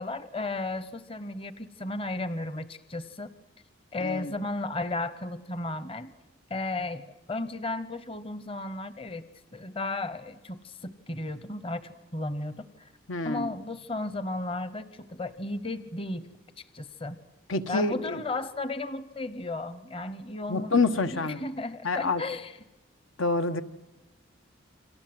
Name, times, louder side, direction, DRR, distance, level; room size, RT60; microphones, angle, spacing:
voice 1, 0.0-3.3 3.9-6.1 6.5-12.9 13.2-16.3 16.6-17.2 17.7-22.5, left 2 dB, 30° left, 14 dB, 0.9 m, -34 dB
voice 2, 4.0-4.3 13.1-13.5 17.5-18.2 20.5-21.4 21.8-22.2 23.2-23.6, left 3 dB, 85° left, 10 dB, 1.4 m, -27 dB
29.0 x 25.0 x 7.8 m, 0.99 s
head